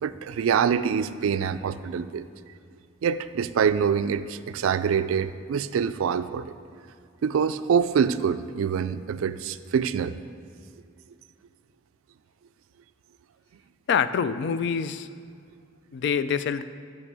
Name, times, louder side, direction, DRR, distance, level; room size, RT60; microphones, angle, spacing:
voice 1, 0.0-2.3 3.0-6.6 7.2-10.2, right 7 dB, 75° right, 13 dB, 0.3 m, -25 dB
voice 2, 13.9-15.1 15.9-16.6, left 7 dB, 55° left, 13 dB, 0.3 m, -25 dB
6.2 x 6.0 x 6.7 m, 2.3 s
head